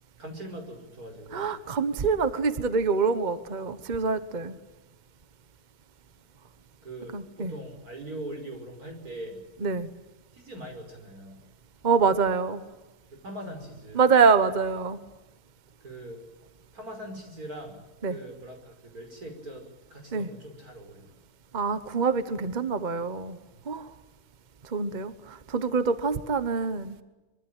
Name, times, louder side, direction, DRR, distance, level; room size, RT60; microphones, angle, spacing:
voice 1, 0.2-1.5 6.8-9.4 10.3-11.4 13.1-14.0 15.8-16.2 16.7-17.8 18.1-21.1, right 1 dB, 85° right, 4 dB, 5.9 m, -41 dB
voice 2, 1.3-4.6 7.1-7.5 9.6-9.9 11.8-12.6 13.9-15.0 18.0-18.2 20.1-20.3 21.5-23.4 23.7-23.9 24.6-27.0, right 5 dB, 35° right, 11 dB, 1.2 m, -25 dB
25.0 x 23.0 x 9.0 m, 1.1 s
omnidirectional pair, 1.5 m